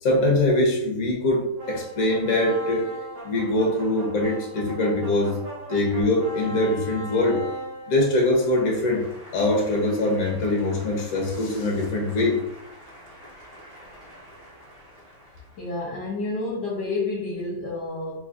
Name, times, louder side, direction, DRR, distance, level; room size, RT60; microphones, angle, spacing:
voice 1, 0.0-2.9 3.2-5.4 5.7-7.4 7.9-9.0 9.3-12.4, left 1 dB, 50° left, -2 dB, 1.3 m, -23 dB
sound 1, 1.6-15.7, right 1 dB, 35° right, 1.2 m, -40 dB
voice 2, 15.6-18.2, left 3 dB, 70° left, -4 dB, 1.4 m, -29 dB
4.0 x 3.2 x 2.5 m, 0.81 s
omnidirectional pair, 2.1 m